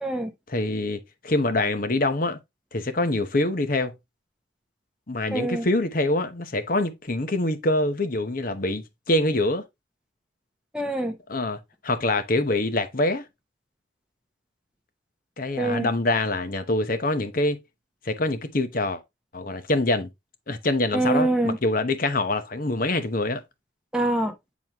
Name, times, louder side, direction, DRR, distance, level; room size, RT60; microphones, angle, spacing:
voice 1, 0.0-0.3 5.3-5.7 10.7-11.2 15.6-15.9 20.9-21.6 23.9-24.3, right 1 dB, 5° right, 0.7 m, -24 dB
voice 2, 0.5-2.4 2.7-3.9 5.1-9.6 11.3-11.6 11.8-13.2 15.4-17.6 18.0-19.0 19.3-20.1 20.5-23.4, left 2 dB, 45° left, 0.9 m, -25 dB
8.9 x 4.2 x 2.9 m
head